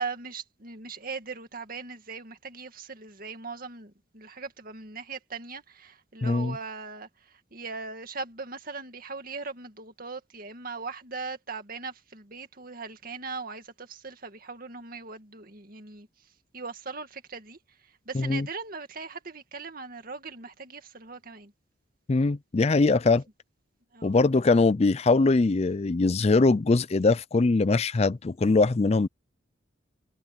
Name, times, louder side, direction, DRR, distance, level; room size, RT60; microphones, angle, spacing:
voice 1, 0.0-16.1 16.5-21.5 23.9-24.3, right 4 dB, 45° right, 2.2 m, -39 dB
voice 2, 6.2-6.6 18.1-18.5 22.1-23.2 24.0-29.1, left 3 dB, 35° left, 0.4 m, -22 dB
head